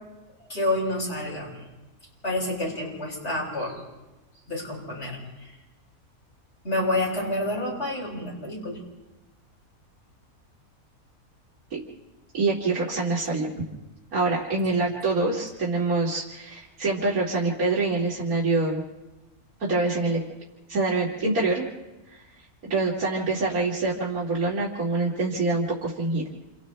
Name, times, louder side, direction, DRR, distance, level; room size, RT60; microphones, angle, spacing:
voice 1, 0.4-1.6 2.2-3.8 4.5-5.5 6.6-8.8, left 1 dB, 45° left, -4 dB, 7.0 m, -29 dB
voice 2, 12.3-13.5 14.1-18.8 19.6-20.2 20.7-21.7 22.1-22.2 22.6-26.2, right 3 dB, 75° right, -6 dB, 3.0 m, -25 dB
29.0 x 28.0 x 3.3 m, 1.1 s
omnidirectional pair, 1.5 m